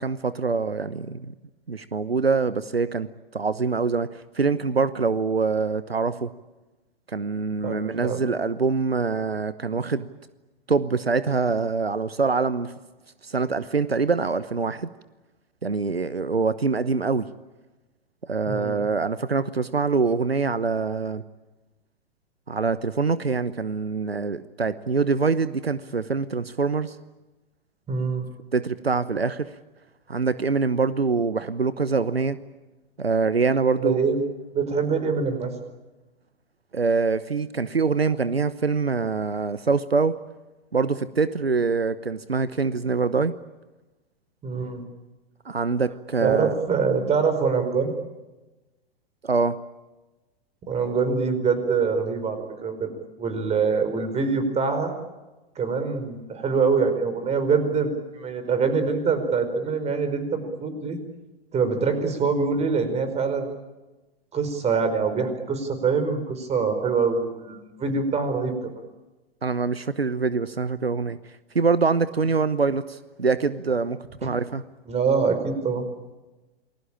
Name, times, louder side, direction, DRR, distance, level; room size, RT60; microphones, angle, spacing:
voice 1, 0.0-1.3 1.7-3.1 3.3-6.3 7.1-10.1 10.7-12.7 13.2-14.9 15.6-17.3 18.2-21.2 22.5-27.0 28.5-29.5 30.1-32.4 33.0-34.0 36.7-40.2 40.7-43.3 45.4-46.6 49.2-49.6 69.4-71.2 71.5-74.6, right 4 dB, 90° right, 15 dB, 1.0 m, -24 dB
voice 2, 7.6-8.2 18.5-18.8 27.9-28.3 33.8-34.2 34.5-35.5 44.4-44.9 46.2-47.9 50.7-52.9 53.2-54.9 55.5-57.9 58.1-61.0 61.5-63.5 64.3-68.7 74.2-74.3 74.9-75.8, right 5 dB, 20° right, 9 dB, 4.9 m, -24 dB
28.5 x 21.0 x 8.8 m, 1.1 s
figure-of-eight pair, 100°, 30 cm